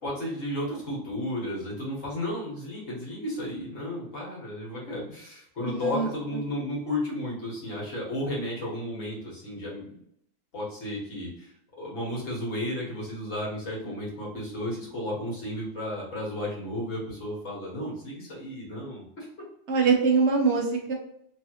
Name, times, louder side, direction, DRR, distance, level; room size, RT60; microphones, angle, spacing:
voice 1, 0.0-9.9 10.5-11.5 11.8-19.3, left 1 dB, 75° left, -5 dB, 2.0 m, -33 dB
voice 2, 5.7-6.1 19.7-20.9, right 5 dB, 60° right, 1 dB, 1.1 m, -23 dB
3.7 x 3.2 x 2.9 m, 0.72 s
omnidirectional pair, 1.3 m